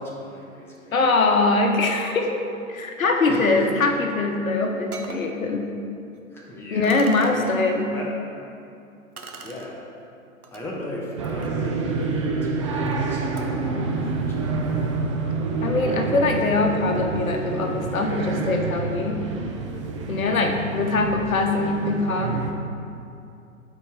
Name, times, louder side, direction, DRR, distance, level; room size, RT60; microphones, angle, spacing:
voice 1, 0.0-0.9 3.3-3.9 6.3-8.1 9.4-9.9 10.5-14.5, left 1 dB, 5° left, -4 dB, 0.8 m, -38 dB
voice 2, 0.9-2.4 2.7-5.7 6.7-7.9 15.6-19.2 20.1-22.4, left 3 dB, 70° left, 3 dB, 1.0 m, -22 dB
sound 1, 4.3-4.4 4.9-5.3 6.1-6.2 6.8-7.3 9.2-9.7 10.4-10.6 11.1-13.7, right 3 dB, 85° right, 0.9 m, -43 dB
sound 2, 11.2-22.5, right 3 dB, 25° right, 0.4 m, -27 dB
12.0 x 4.5 x 3.4 m, 2.6 s
figure-of-eight pair, 110°, 43 cm